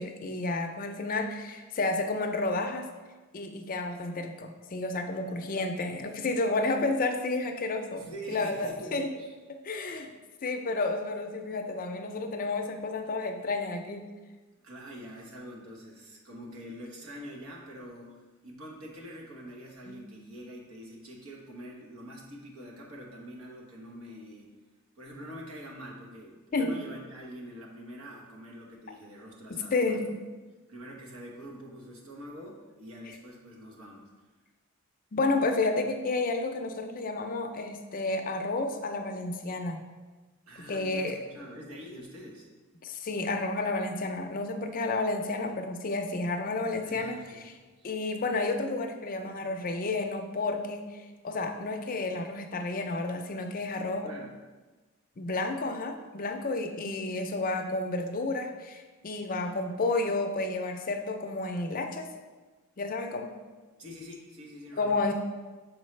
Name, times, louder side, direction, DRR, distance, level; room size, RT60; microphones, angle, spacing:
voice 1, 0.0-2.9 3.3-9.1 9.6-10.1 10.4-14.1 19.9-20.0 26.5-26.7 29.5-30.1 35.1-39.8 40.7-41.2 42.8-47.6 47.8-50.9 51.2-54.1 55.2-62.1 62.8-63.3 64.8-65.1, left 3 dB, 40° left, 5 dB, 0.5 m, -31 dB
voice 2, 5.1-5.5 7.9-9.3 9.9-10.1 14.6-24.5 25.0-30.2 30.7-34.1 40.5-42.5 46.8-47.9 54.0-54.3 59.4-59.8 63.8-65.1, equal, 80° right, -1 dB, 1.2 m, -45 dB
6.3 x 4.6 x 3.2 m, 1.3 s
head